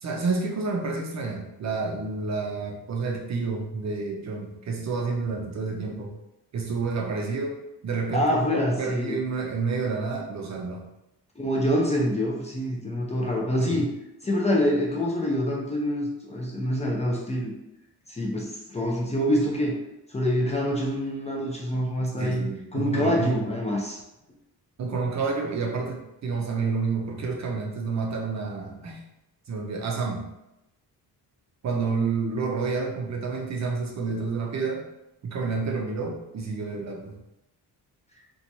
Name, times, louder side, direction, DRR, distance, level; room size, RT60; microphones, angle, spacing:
voice 1, 0.0-6.1 6.5-10.8 13.6-13.8 22.2-23.5 24.8-29.0 29.5-30.3 31.6-34.9 35.2-37.2, right 4 dB, 45° right, 1 dB, 0.5 m, -29 dB
voice 2, 8.1-9.2 11.4-13.9 14.2-17.5 18.1-19.8 20.1-24.0, equal, 15° left, -2 dB, 0.5 m, -26 dB
2.8 x 2.3 x 2.6 m, 0.90 s
cardioid pair, 95°, 40 cm